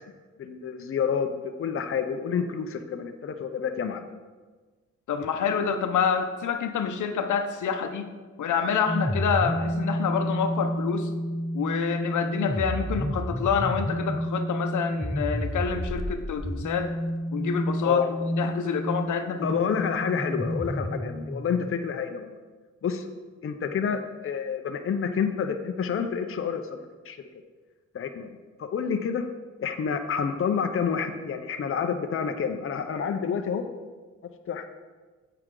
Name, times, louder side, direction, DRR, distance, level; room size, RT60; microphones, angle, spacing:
voice 1, 0.4-1.3 1.6-4.1 17.8-18.1 19.4-22.4 22.8-23.1 23.4-27.2 27.9-28.3 28.6-29.2 29.6-33.7 34.2-34.7, left 6 dB, 45° left, 6 dB, 0.6 m, -28 dB
voice 2, 5.1-8.1 8.4-11.1 11.5-16.9 17.3-18.0 18.4-19.5, left 6 dB, 85° left, 7 dB, 0.8 m, -27 dB
sound 1, 8.9-21.7, equal, ahead, 0.4 m, -30 dB
9.4 x 7.7 x 3.8 m, 1.3 s
wide cardioid pair, 150°, 29 cm